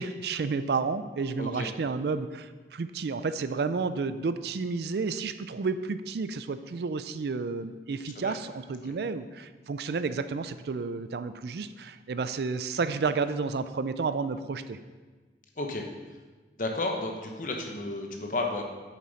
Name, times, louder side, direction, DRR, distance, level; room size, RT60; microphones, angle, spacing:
voice 1, 0.0-14.8, right 4 dB, 70° right, 12 dB, 0.4 m, -31 dB
voice 2, 1.4-1.7 8.2-8.3 8.8-8.9 15.6-15.8 16.6-18.6, left 2 dB, 45° left, 2 dB, 1.0 m, -32 dB
8.4 x 7.5 x 4.1 m, 1.3 s
head